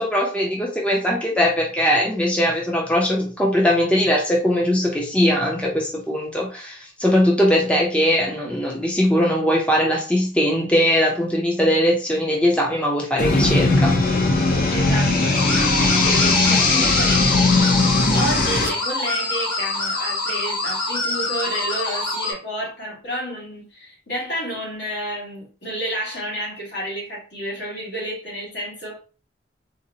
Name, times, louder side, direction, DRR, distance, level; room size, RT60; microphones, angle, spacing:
voice 1, 0.0-13.9, equal, 5° left, 0.5 m, -20 dB
sound 1, 13.2-18.7, left 3 dB, 50° left, 0.6 m, -18 dB
voice 2, 14.7-29.0, equal, 70° left, 1.4 m, -30 dB
sound 2, 15.3-22.3, left 2 dB, 25° left, 1.0 m, -26 dB
3.9 x 2.0 x 2.7 m
head